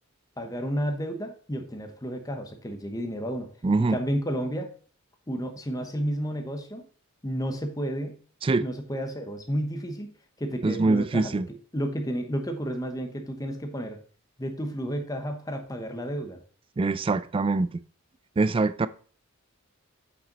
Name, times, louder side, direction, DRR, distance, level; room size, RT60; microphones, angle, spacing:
voice 1, 0.4-3.5 3.8-4.7 5.3-6.8 7.2-8.2 8.6-10.1 10.4-11.4 11.7-14.0 14.4-16.4, equal, 15° left, 1.1 m, -31 dB
voice 2, 3.6-4.0 8.4-8.6 10.6-11.4 16.8-17.7 18.4-18.9, right 3 dB, 25° right, 0.3 m, -23 dB
8.1 x 6.0 x 4.0 m
head